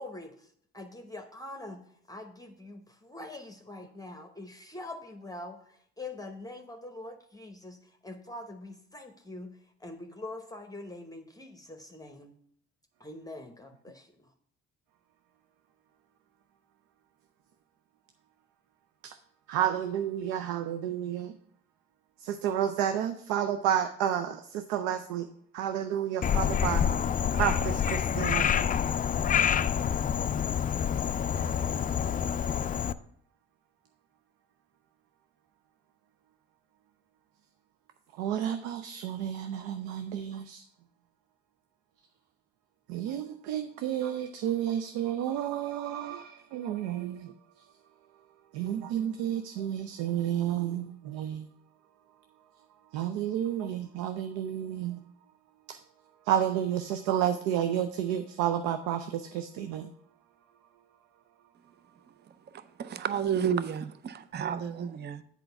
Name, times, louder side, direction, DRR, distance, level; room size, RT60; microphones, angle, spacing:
voice 1, 0.0-12.3 13.0-14.3, left 2 dB, 10° left, 4 dB, 0.9 m, -44 dB
voice 2, 19.5-21.3 22.2-25.3 25.5-26.8 27.3-28.5 38.2-40.6 42.9-47.3 48.5-51.5 52.9-55.0 55.7-55.8 56.3-59.9, right 10 dB, 85° right, 9 dB, 0.5 m, -31 dB
Frog, 26.2-32.9, left 8 dB, 30° left, 0.4 m, -27 dB
voice 3, 62.2-65.2, right 7 dB, 35° right, 13 dB, 0.6 m, -32 dB
7.8 x 4.5 x 5.8 m, 0.66 s
hypercardioid pair, 60°, 29 cm